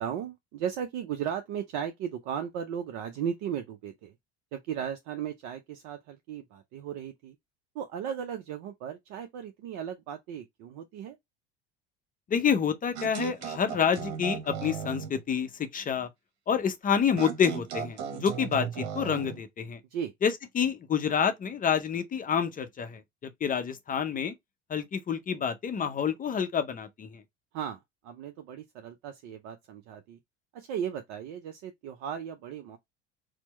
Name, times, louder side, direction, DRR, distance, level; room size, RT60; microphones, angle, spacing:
voice 1, 0.0-4.1 4.5-7.4 7.7-11.2 19.9-20.1 27.5-30.2 30.5-32.8, right 8 dB, 55° right, 0.6 m, -36 dB
voice 2, 12.3-16.1 16.5-19.8 20.2-24.3 24.7-27.2, left 7 dB, 25° left, 0.6 m, -28 dB
sound 1, 13.0-15.2 17.2-19.4, right 8 dB, 70° right, 0.9 m, -36 dB
4.3 x 2.1 x 3.0 m
figure-of-eight pair, 65°, 34 cm